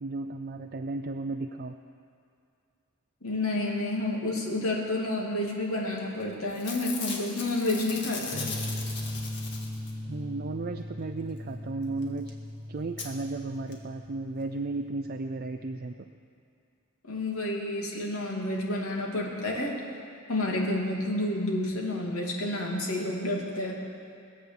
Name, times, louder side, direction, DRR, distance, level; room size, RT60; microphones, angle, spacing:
voice 1, 0.0-1.7 10.0-12.4 12.7-15.9, right 3 dB, 45° right, 6 dB, 0.5 m, -34 dB
voice 2, 3.2-8.5 17.1-19.7 20.3-23.8, left 1 dB, 85° left, -2 dB, 2.7 m, -30 dB
Packing tape duct tape / Tearing, 6.0-6.2 6.5-10.1 12.0-12.1 12.3-12.4 13.0-13.1 13.7-13.8 14.0-14.1, left 4 dB, 55° left, 1.9 m, -38 dB
sound 1, 8.3-16.0, left 1 dB, 5° left, 3.1 m, -39 dB
21.5 x 8.5 x 7.1 m, 2.4 s
head